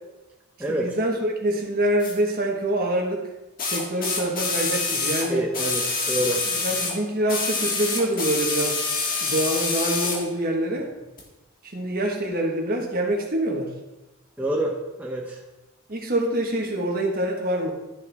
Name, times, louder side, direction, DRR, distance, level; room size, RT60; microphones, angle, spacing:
voice 1, 0.7-3.3 3.7-5.4 6.5-8.8 9.2-10.9 11.7-13.7 15.9-17.7, right 1 dB, 45° right, 1 dB, 1.5 m, -25 dB
sound 1, 2.0-2.1 3.6-7.0 7.3-10.2 11.2-11.3, left 3 dB, 40° left, 1.6 m, -26 dB
voice 2, 5.3-6.4 14.4-15.4, right 1 dB, 10° right, -2 dB, 0.7 m, -27 dB
11.5 x 6.7 x 3.5 m, 1.0 s
head